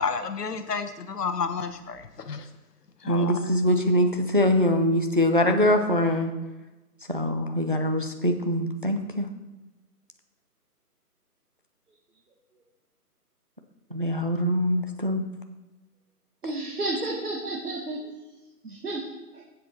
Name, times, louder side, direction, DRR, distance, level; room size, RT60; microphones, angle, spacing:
voice 1, 0.0-2.4 3.0-3.5, left 5 dB, 80° left, 9 dB, 1.2 m, -31 dB
voice 2, 3.1-6.3 7.1-9.3 13.9-15.2, left 1 dB, 35° right, 5 dB, 0.6 m, -23 dB
voice 3, 16.4-18.1 18.6-19.4, right 2 dB, 75° right, -1 dB, 1.9 m, -32 dB
7.6 x 6.8 x 6.1 m, 1.1 s
hypercardioid pair, 175°, 47 cm